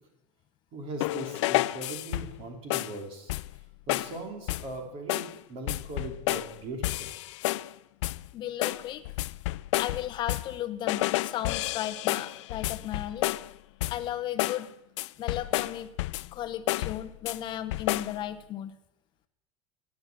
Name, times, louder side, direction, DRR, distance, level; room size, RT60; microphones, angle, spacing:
voice 1, 0.7-3.3 3.9-7.1, right 2 dB, 35° right, 3 dB, 3.1 m, -40 dB
sound 1, 1.0-2.4 2.7-3.0 3.3-3.6 3.9-4.2 4.5-4.8 5.1-5.4 5.7-6.5 6.8-7.7 8.0-8.3 8.6-10.6 10.9-13.5 13.8-14.1 14.4-14.7 15.0-16.4 16.7-17.4 17.7-18.2, left 18 dB, 75° left, 0.4 m, -30 dB
voice 2, 8.3-9.1 9.8-13.3 13.9-14.7 15.2-15.9 16.2-18.8, left 12 dB, 30° left, 11 dB, 0.8 m, -35 dB
13.0 x 9.7 x 7.7 m, 0.91 s
supercardioid pair, 165°, 15 cm